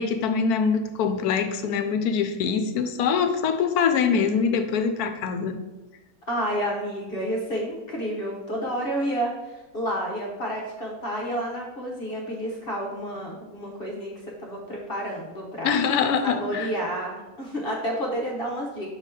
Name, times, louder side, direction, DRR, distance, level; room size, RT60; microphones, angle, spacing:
voice 1, 0.0-5.6 15.6-16.7, left 6 dB, 75° left, 8 dB, 1.1 m, -24 dB
voice 2, 6.3-14.1 14.4-15.7 16.2-18.9, equal, 40° left, -2 dB, 1.0 m, -30 dB
6.6 x 4.1 x 3.6 m, 1.1 s
omnidirectional pair, 1.7 m